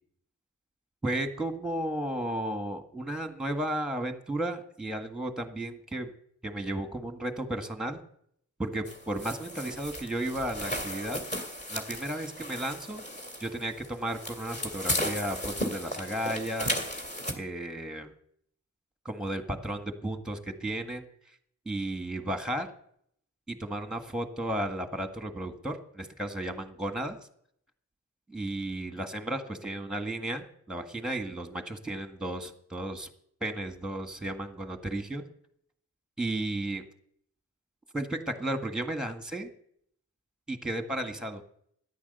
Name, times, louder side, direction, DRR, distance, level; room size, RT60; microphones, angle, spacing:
voice 1, 1.0-6.1 6.4-8.0 8.6-11.2 11.7-13.0 13.4-16.7 17.3-18.1 19.0-21.0 21.6-22.7 23.5-27.2 28.3-33.1 33.4-35.2 36.2-36.8 37.9-39.5 40.5-41.4, right 1 dB, ahead, 6 dB, 1.7 m, -34 dB
sound 1, 8.9-17.3, equal, 25° left, 2.5 m, -35 dB
13.5 x 10.5 x 6.8 m, 0.67 s
wide cardioid pair, 105°, 30 cm